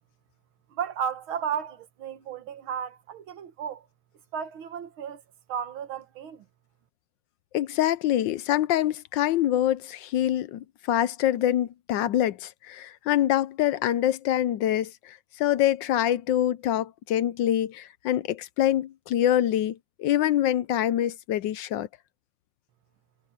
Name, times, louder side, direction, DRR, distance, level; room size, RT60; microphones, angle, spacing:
voice 1, 0.7-3.9 4.3-5.2 5.5-6.5, right 8 dB, 85° right, 2.1 m, -34 dB
voice 2, 7.5-21.9, left 12 dB, 70° left, 1.2 m, -25 dB
omnidirectional pair, 2.2 m